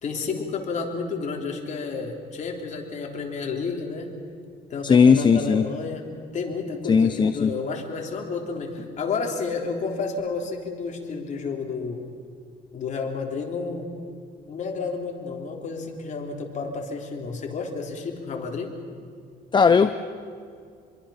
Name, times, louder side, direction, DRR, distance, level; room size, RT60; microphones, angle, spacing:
voice 1, 0.0-4.1 4.7-6.1 6.3-12.0 12.7-13.9 14.5-18.7, left 4 dB, 45° left, 1 dB, 3.6 m, -31 dB
voice 2, 4.8-5.6 6.9-7.5 19.5-19.9, left 6 dB, 25° left, 10 dB, 0.7 m, -17 dB
26.5 x 22.5 x 5.8 m, 2.2 s
cardioid pair, 110°, 17 cm